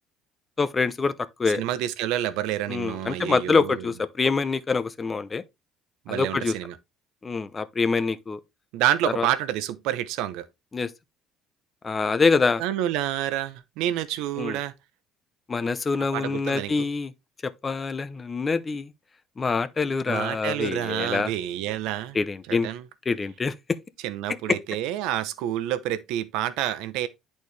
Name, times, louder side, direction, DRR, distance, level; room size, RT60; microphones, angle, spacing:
voice 1, 0.6-1.1 1.4-1.6 2.7-5.4 6.1-6.5 7.2-8.4 9.0-9.3 10.7-10.9 11.8-12.6 14.4-14.6 15.5-17.1 17.4-18.9 19.4-21.3 22.1-22.7 23.1-23.5, left 4 dB, 25° left, 0.6 m, -25 dB
voice 2, 1.5-3.8 6.1-6.8 8.7-10.5 12.6-14.7 16.0-16.9 20.1-22.2 22.5-22.8 24.0-27.1, right 12 dB, 80° right, 0.8 m, -28 dB
10.5 x 4.2 x 3.2 m
cardioid pair, 130°, 0 cm